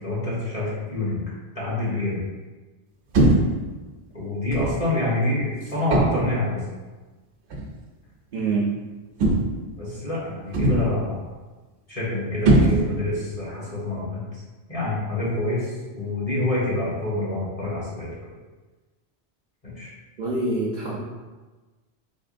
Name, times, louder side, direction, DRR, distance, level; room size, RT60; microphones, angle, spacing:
voice 1, 0.0-1.2 1.5-2.2 4.1-6.6 9.8-11.2 11.9-14.2 14.7-18.3 19.6-19.9, left 2 dB, 35° left, -8 dB, 1.2 m, -27 dB
sound 1, 3.1-3.6 4.5-4.8 5.9-6.4 7.5-7.7 9.2-9.7 10.5-11.0 12.4-13.1, right 1 dB, 80° right, 0.9 m, -20 dB
voice 2, 8.3-8.8 20.2-21.0, right 3 dB, 55° right, -4 dB, 0.6 m, -25 dB
3.6 x 3.3 x 2.5 m, 1.3 s
omnidirectional pair, 1.1 m